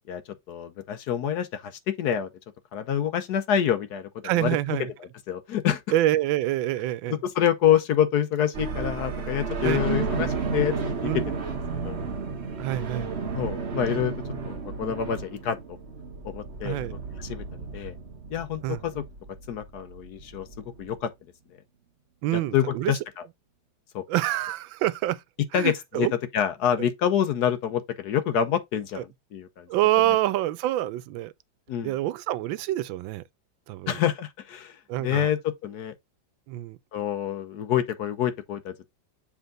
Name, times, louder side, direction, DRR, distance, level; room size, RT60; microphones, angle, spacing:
voice 1, 0.5-1.7 2.0-2.3 2.7-4.1 4.3-4.6 5.3-5.8 7.1-10.7 11.0-11.1 11.8-12.0 13.3-14.1 14.4-15.6 16.2-16.8 17.2-17.4 17.7-17.9 18.3-19.0 19.5-20.5 20.8-21.1 22.3-23.0 23.9-24.0 25.5-26.1 26.3-29.7 31.7-31.9 33.9-35.9 36.9-38.9, left 9 dB, 65° left, 1.1 m, -27 dB
voice 2, 4.2-4.9 5.9-7.2 9.6-9.8 11.0-11.4 12.6-13.1 16.6-16.9 18.6-18.8 22.2-22.9 24.1-25.2 25.5-26.1 29.0-29.1 29.7-31.3 31.8-33.2 33.7-34.0 34.9-35.3 36.5-36.8, right 15 dB, 85° right, 1.3 m, -26 dB
sound 1, 8.5-21.0, right 4 dB, 40° right, 1.2 m, -33 dB
7.2 x 3.5 x 3.8 m
omnidirectional pair, 2.0 m